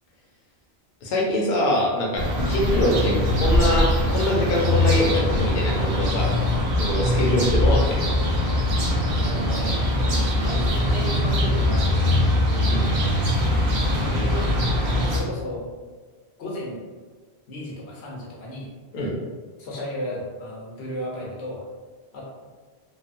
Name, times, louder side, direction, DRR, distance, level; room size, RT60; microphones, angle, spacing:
voice 1, 1.0-6.3 6.8-8.0 12.7-12.9 18.9-19.1, left 1 dB, 65° left, -3 dB, 0.7 m, -24 dB
sound 1, 2.2-15.2, left 1 dB, 70° right, 0.9 m, -22 dB
voice 2, 9.2-12.0 12.7-12.9 13.9-14.6 14.9-15.8 16.4-16.8 17.5-18.7 19.6-21.7 22.1-22.2, equal, 90° left, -3 dB, 1.0 m, -34 dB
2.9 x 2.0 x 2.5 m, 1.4 s
omnidirectional pair, 1.1 m